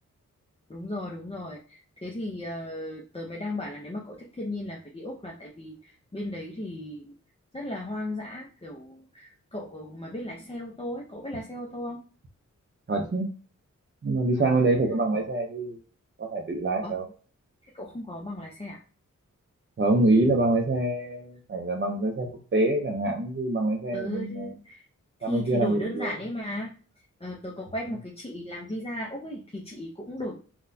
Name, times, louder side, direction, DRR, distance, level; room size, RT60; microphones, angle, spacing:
voice 1, 0.7-7.2 7.5-12.0 14.4-14.7 16.8-17.0 17.6-18.8 23.9-24.9 25.2-26.7 27.2-30.4, left 1 dB, 20° left, -2 dB, 0.7 m, -36 dB
voice 2, 12.9-13.3 14.0-15.8 16.2-17.0 19.8-24.5 25.2-26.1, right 2 dB, 40° right, 1 dB, 0.6 m, -25 dB
3.9 x 2.3 x 2.7 m, 0.39 s
cardioid pair, 55°, 31 cm